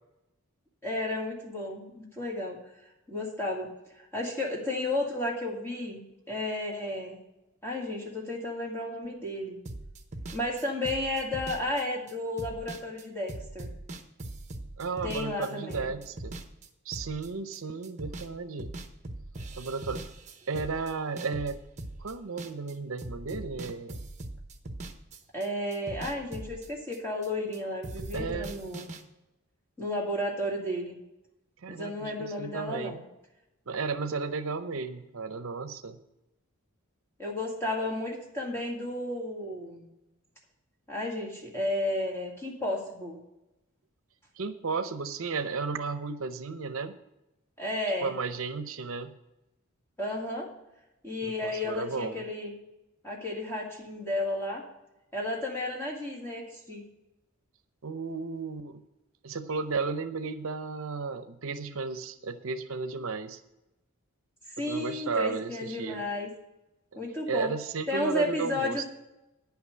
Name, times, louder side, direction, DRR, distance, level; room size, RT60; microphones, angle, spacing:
voice 1, 0.8-2.6 3.1-7.2 7.6-9.6 10.3-13.7 15.0-15.9 25.3-28.9 29.8-31.0 31.7-33.0 37.2-39.9 40.9-43.2 47.6-48.1 50.0-50.5 51.0-52.5 53.0-54.6 55.1-56.8 64.6-66.3 67.0-67.5 67.9-68.8, left 1 dB, 10° left, -2 dB, 2.1 m, -33 dB
sound 1, 9.6-17.6 17.8-18.3 18.6-22.7 23.0-25.5 25.7-27.6 27.8-29.0, right 2 dB, 30° right, 0.9 m, -41 dB
voice 2, 14.8-16.4 16.9-18.7 19.5-20.0 20.5-21.6 22.0-24.0 28.1-28.5 31.6-33.0 33.7-36.0 44.4-47.0 48.0-49.1 51.2-52.2 57.8-58.8 59.2-63.4 64.6-66.0 67.3-68.8, right 4 dB, 70° right, 10 dB, 0.6 m, -34 dB
10.0 x 5.8 x 7.8 m, 0.92 s
head